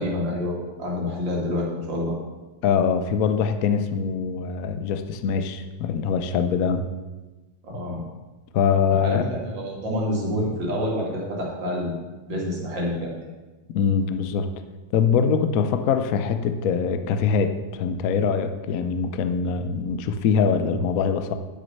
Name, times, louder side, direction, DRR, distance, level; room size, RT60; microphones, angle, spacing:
voice 1, 0.0-2.2 7.6-8.0 8.9-11.9 12.3-13.1, left 1 dB, 75° right, -2 dB, 2.8 m, -27 dB
voice 2, 2.6-6.8 8.5-9.2 13.7-14.5 14.9-21.3, left 6 dB, 60° left, 8 dB, 1.0 m, -23 dB
10.5 x 6.2 x 5.5 m, 1.2 s
omnidirectional pair, 2.0 m